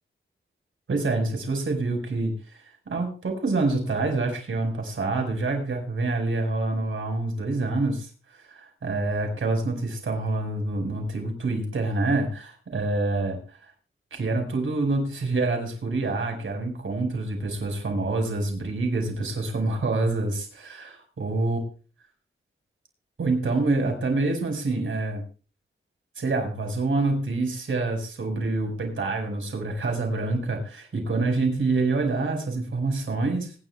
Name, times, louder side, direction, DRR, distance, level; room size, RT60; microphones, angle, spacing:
voice 1, 0.9-2.6 2.9-13.7 14.1-21.6 23.2-25.2 26.2-33.5, right 3 dB, 75° right, 3 dB, 5.5 m, -27 dB
25.5 x 11.0 x 2.4 m, 0.36 s
wide cardioid pair, 105°, 21 cm